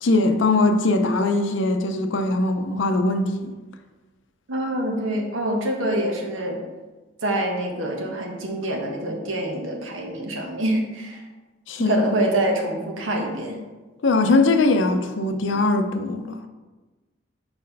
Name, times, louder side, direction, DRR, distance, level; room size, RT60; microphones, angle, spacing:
voice 1, 0.0-3.5 11.7-12.0 14.0-16.4, left 2 dB, 70° left, 0.6 m, -21 dB
voice 2, 4.5-6.6 7.2-11.2 11.8-13.6, right 1 dB, 85° right, 1.1 m, -25 dB
4.4 x 4.3 x 5.3 m
head